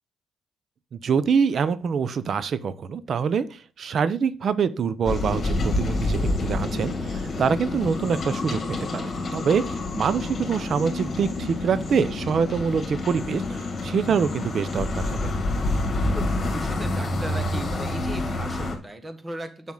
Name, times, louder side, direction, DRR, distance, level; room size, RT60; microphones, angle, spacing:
voice 1, 0.9-8.6 8.9-9.6 9.9-15.2, right 6 dB, 55° right, 14 dB, 0.7 m, -25 dB
sound 1, 5.0-18.7, left 2 dB, 40° left, 2.3 m, -28 dB
sound 2, 6.1-14.9 15.4-15.5, left 5 dB, 15° left, 2.9 m, -46 dB
voice 2, 16.0-19.7, right 1 dB, 20° right, 7 dB, 1.5 m, -37 dB
7.3 x 6.0 x 3.9 m, 0.35 s
cardioid pair, 90°, 0 cm